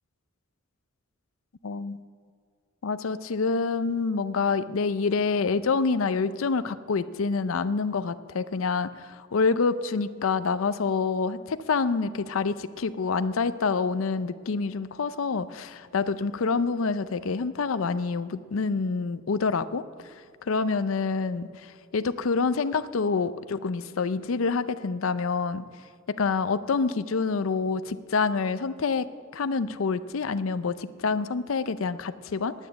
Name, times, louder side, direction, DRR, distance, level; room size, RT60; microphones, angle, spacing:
voice 1, 1.6-2.0 2.8-20.1 20.4-25.6 26.1-32.5, left 4 dB, 75° left, 13 dB, 0.5 m, -27 dB
10.0 x 9.0 x 9.5 m, 2.2 s
head